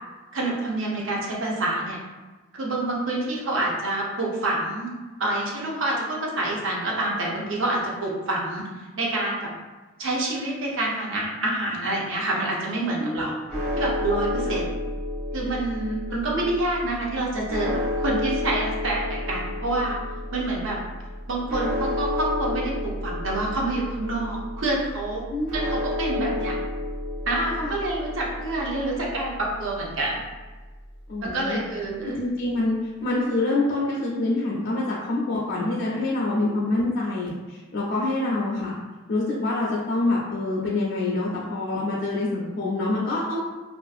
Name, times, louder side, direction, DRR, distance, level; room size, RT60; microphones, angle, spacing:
voice 1, 0.3-2.0 2.6-4.9 5.2-8.6 9.0-9.5 10.0-13.3 13.8-14.7 15.3-20.0 20.3-20.8 21.3-25.2 25.5-26.5 27.3-30.2 31.2-32.2 36.4-36.5, right 2 dB, 75° right, -3 dB, 0.6 m, -27 dB
voice 2, 13.0-13.4 14.4-14.6 25.3-25.8 27.6-27.7 31.1-31.6 32.0-38.7 39.1-43.4, left 2 dB, 55° left, -5 dB, 0.4 m, -26 dB
sound 1, 13.5-31.7, left 1 dB, 25° right, 0.9 m, -31 dB
2.5 x 2.4 x 2.3 m, 1.2 s
head